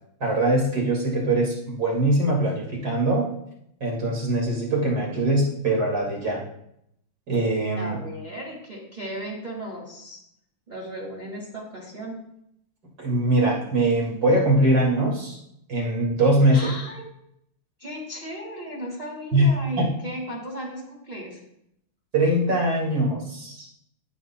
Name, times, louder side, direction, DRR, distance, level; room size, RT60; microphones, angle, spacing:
voice 1, 0.2-3.3 3.8-6.4 7.3-8.0 13.0-15.4 15.7-16.7 19.3-19.5 19.8-19.9 22.1-23.7, right 1 dB, 50° right, -2 dB, 2.8 m, -22 dB
voice 2, 7.7-10.2 10.7-12.2 16.5-17.0 17.8-21.4, equal, 20° right, -2 dB, 1.9 m, -35 dB
14.0 x 7.5 x 2.2 m, 0.76 s
omnidirectional pair, 2.3 m